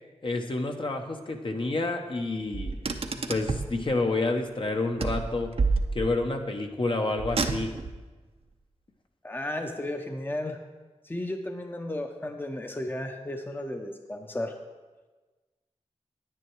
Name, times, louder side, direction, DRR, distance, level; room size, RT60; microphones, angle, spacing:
voice 1, 0.2-2.8 3.3-5.5 5.9-7.7, left 2 dB, 45° left, 4 dB, 1.0 m, -29 dB
Car, 2.5-3.8 5.0-6.3 7.2-8.0, right 4 dB, 55° right, 0.7 m, -29 dB
voice 2, 9.2-10.6 11.0-14.5, left 1 dB, 15° left, 4 dB, 0.8 m, -34 dB
9.7 x 9.7 x 4.7 m, 1.3 s
wide cardioid pair, 90°, 12 cm